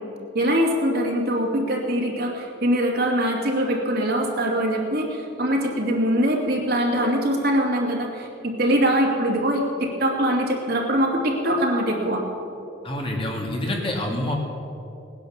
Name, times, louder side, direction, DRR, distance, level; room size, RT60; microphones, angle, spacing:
voice 1, 0.3-12.2, equal, 50° right, -1 dB, 2.6 m, -23 dB
voice 2, 12.8-14.3, left 1 dB, 30° left, 0 dB, 2.2 m, -27 dB
19.0 x 10.5 x 7.3 m, 2.8 s
head